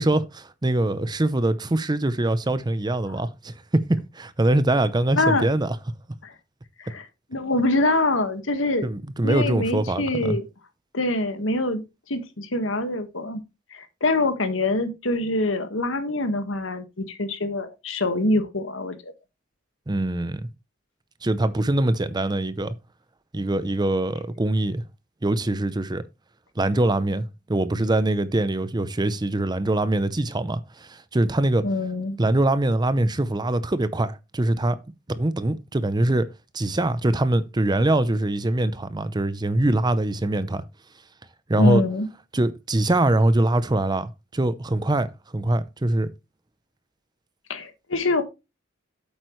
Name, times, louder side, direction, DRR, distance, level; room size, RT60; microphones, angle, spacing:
voice 1, 0.0-5.8 8.8-10.4 19.9-20.5 21.2-22.7 23.3-24.8 25.2-26.0 26.6-31.7 32.2-34.8 35.1-36.3 36.5-40.6 41.5-41.8 42.3-45.1 45.3-46.1, right 1 dB, 20° right, 0.6 m, -23 dB
voice 2, 5.1-5.5 6.2-6.3 6.8-7.0 7.3-8.9 9.2-10.4 10.9-11.8 12.1-13.4 13.7-19.1 31.6-32.2 41.6-42.1 47.5-48.2, left 2 dB, 75° left, 1.7 m, -24 dB
9.0 x 7.8 x 3.1 m
head